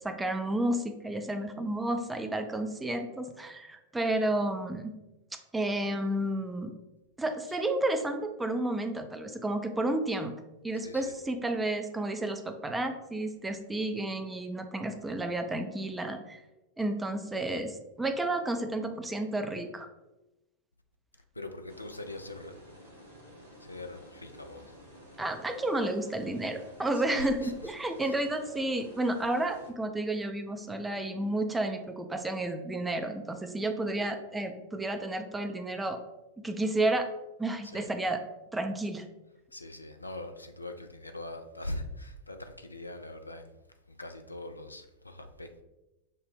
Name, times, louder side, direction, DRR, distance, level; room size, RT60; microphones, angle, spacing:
voice 1, 0.0-4.9 5.5-6.7 7.2-10.3 10.6-16.4 16.8-19.9 25.2-36.0 36.4-37.1 37.4-38.2 38.5-39.0, right 1 dB, 10° right, 6 dB, 0.4 m, -31 dB
voice 2, 21.4-22.5 23.7-24.6 37.7-37.9 39.5-43.5 44.0-45.6, left 1 dB, 85° left, 6 dB, 0.3 m, -41 dB
sound 1, 21.7-29.7, equal, 80° right, 1.0 m, -52 dB
5.4 x 2.1 x 3.3 m, 1.0 s
figure-of-eight pair, 90°, 0 cm